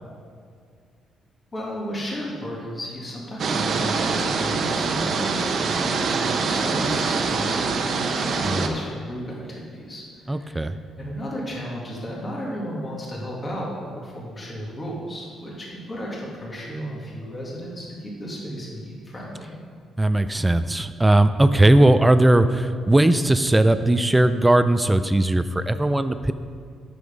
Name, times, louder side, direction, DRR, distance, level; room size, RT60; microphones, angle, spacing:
voice 1, 1.5-19.5, equal, 30° left, -5 dB, 2.2 m, -34 dB
sound 1, 3.4-8.7, right 4 dB, 60° right, 0.8 m, -24 dB
voice 2, 10.3-10.8 20.0-26.3, right 1 dB, 10° right, 11 dB, 0.4 m, -18 dB
8.1 x 7.0 x 5.3 m, 2.1 s
cardioid pair, 90°, 0 cm